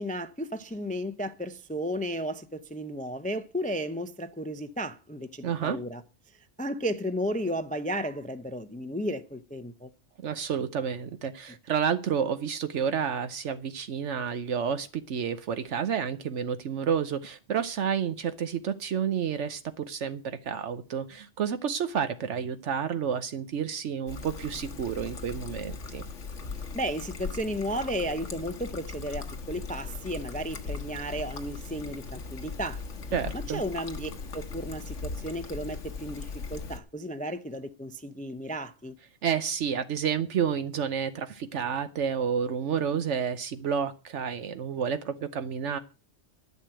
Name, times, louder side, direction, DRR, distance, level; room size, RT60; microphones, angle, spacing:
voice 1, 0.0-6.0 6.6-9.9 26.7-32.8 33.3-39.0, equal, 10° left, 0.5 m, -34 dB
voice 2, 5.4-5.8 10.2-26.0 33.1-33.6 39.2-45.8, right 7 dB, 75° right, 1.1 m, -30 dB
Trickle dribble, 24.1-36.8, left 4 dB, 85° left, 1.6 m, -39 dB
11.0 x 6.5 x 8.8 m
omnidirectional pair, 1.2 m